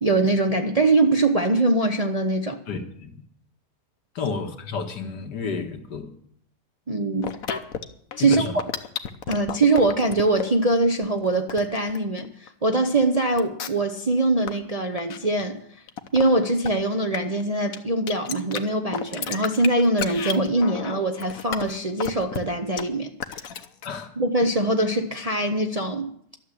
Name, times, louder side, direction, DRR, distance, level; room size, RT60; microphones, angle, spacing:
voice 1, 0.0-2.6 6.9-7.3 8.2-8.6 9.3-15.6 16.1-23.1 24.2-26.1, right 2 dB, 35° right, 0.6 m, -22 dB
voice 2, 2.7-3.2 4.2-6.1 8.2-8.5 23.8-24.1, left 5 dB, 80° left, 2.1 m, -31 dB
sound 1, 7.2-10.4 10.9-12.5 13.0-13.1 13.4-13.9 14.2-14.5 14.9-15.4 15.9-16.2 16.6-16.7 17.1-17.4 17.7-17.8 18.1-18.6 18.9-22.4 22.8-22.9 23.2-23.9, left 8 dB, 60° left, 1.2 m, -31 dB
12.5 x 7.4 x 9.8 m
omnidirectional pair, 1.8 m